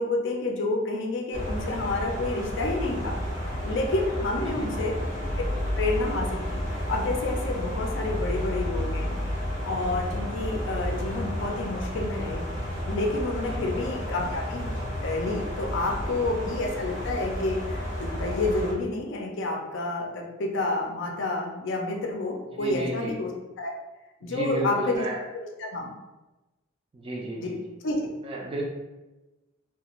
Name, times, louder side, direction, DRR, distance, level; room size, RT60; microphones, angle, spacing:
voice 1, 0.0-3.2 3.4-4.9 5.8-12.4 12.9-14.7 15.0-23.3 23.6-23.7 24.2-25.1 25.3-25.9 27.4-27.5 27.8-28.1, left 2 dB, 65° left, 1 dB, 0.5 m, -29 dB
sound 1, 1.3-18.7, equal, 65° right, 0.8 m, -31 dB
voice 2, 4.4-4.9 13.5-13.8 16.0-16.1 22.5-23.2 24.2-25.2 26.9-27.7 28.2-28.6, right 1 dB, 30° right, -2 dB, 0.4 m, -33 dB
2.4 x 2.2 x 2.9 m, 1.1 s
head